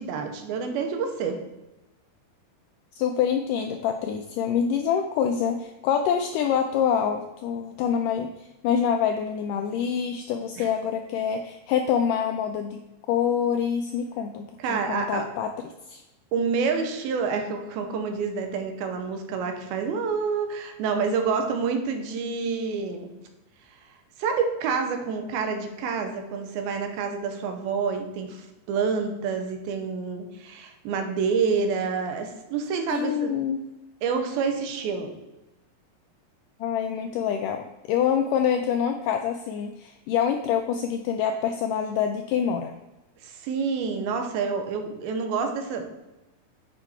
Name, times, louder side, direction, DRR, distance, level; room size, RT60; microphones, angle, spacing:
voice 1, 0.0-1.4 10.6-10.7 14.6-15.3 16.3-23.1 24.2-33.3 34.0-35.1 43.2-45.8, right 5 dB, 85° right, 5 dB, 2.8 m, -28 dB
voice 2, 3.0-8.3 8.6-12.8 13.1-16.0 32.9-33.6 36.6-42.7, left 8 dB, 85° left, 5 dB, 1.9 m, -26 dB
8.9 x 5.1 x 4.3 m, 1.0 s
omnidirectional pair, 4.3 m